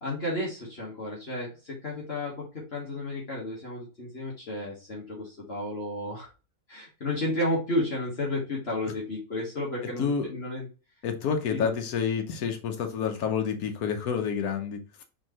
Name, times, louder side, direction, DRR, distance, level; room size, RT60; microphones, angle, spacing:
voice 1, 0.0-6.3 6.7-10.7 11.5-11.8, left 1 dB, 45° left, 1.6 m, -32 dB
voice 2, 10.0-10.3 11.0-14.8, left 6 dB, 85° left, 1.3 m, -28 dB
4.5 x 3.7 x 3.0 m
omnidirectional pair, 1.5 m